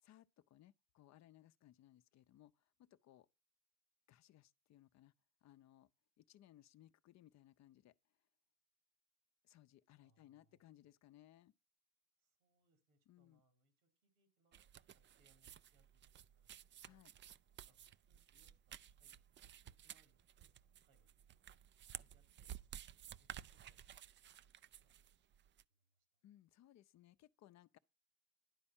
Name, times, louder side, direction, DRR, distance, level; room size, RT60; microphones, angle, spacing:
voice 1, 0.0-3.3 4.1-5.1 5.4-5.9 6.2-8.0 9.4-11.5 13.1-13.4 16.8-17.1 26.2-27.8, left 13 dB, 45° left, 0.6 m, -65 dB
voice 2, 10.0-10.7 12.2-17.0 17.7-19.2 19.5-21.5 21.8-22.5 22.7-25.1 25.7-26.0, right 3 dB, 90° right, 3.3 m, -80 dB
sound 1, 14.5-25.6, right 10 dB, 30° right, 0.4 m, -55 dB
11.0 x 4.2 x 7.2 m
supercardioid pair, 85°, 40 cm